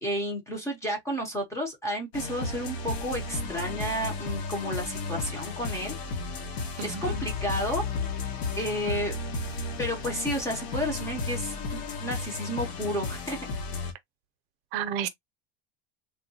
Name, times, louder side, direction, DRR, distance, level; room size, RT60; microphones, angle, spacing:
voice 1, 0.0-5.9 6.8-7.8 8.6-9.2 9.8-13.5, equal, 10° left, 0.7 m, -31 dB
sound 1, 2.1-13.9, left 3 dB, 80° left, 1.1 m, -33 dB
voice 2, 6.8-7.3 14.7-15.1, right 8 dB, 65° right, 0.6 m, -32 dB
3.5 x 2.2 x 2.7 m
cardioid pair, 175°, 32 cm